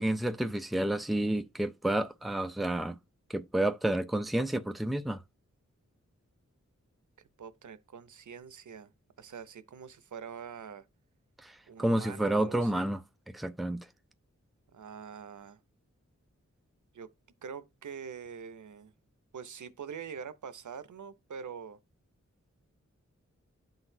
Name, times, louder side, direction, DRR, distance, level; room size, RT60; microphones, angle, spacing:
voice 1, 0.0-3.0 3.3-5.2 11.4-13.0 13.3-13.9, right 1 dB, ahead, 0.5 m, -30 dB
voice 2, 7.4-8.9 9.2-10.9 11.7-12.9 14.7-15.6 16.9-17.1 17.4-18.9 19.3-21.8, right 7 dB, 90° right, 0.6 m, -44 dB
12.0 x 4.0 x 2.6 m
wide cardioid pair, 90°, 29 cm